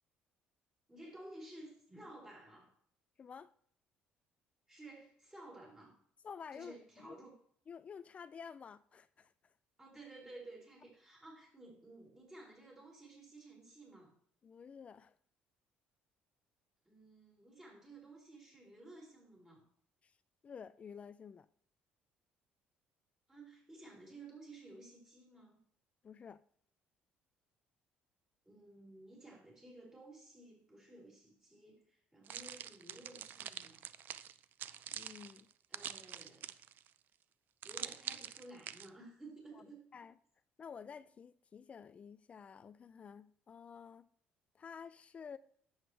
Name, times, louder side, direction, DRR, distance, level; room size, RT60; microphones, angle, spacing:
voice 1, 0.9-2.7 4.7-5.9 6.5-7.3 9.8-14.1 16.8-19.6 23.3-25.6 28.4-33.8 35.7-36.5 37.6-39.9, right 2 dB, 15° right, 4.8 m, -54 dB
voice 2, 3.2-3.5 6.2-7.2 7.7-9.5 14.4-15.1 20.0-20.1 20.4-21.5 26.0-26.4 34.9-35.5 39.5-39.6 39.9-40.1 40.6-44.1 44.5-45.4, left 6 dB, 35° left, 0.4 m, -51 dB
sound 1, 32.3-36.9 37.6-38.9, right 10 dB, 55° right, 0.5 m, -45 dB
11.0 x 8.0 x 3.3 m
cardioid pair, 110°, 4 cm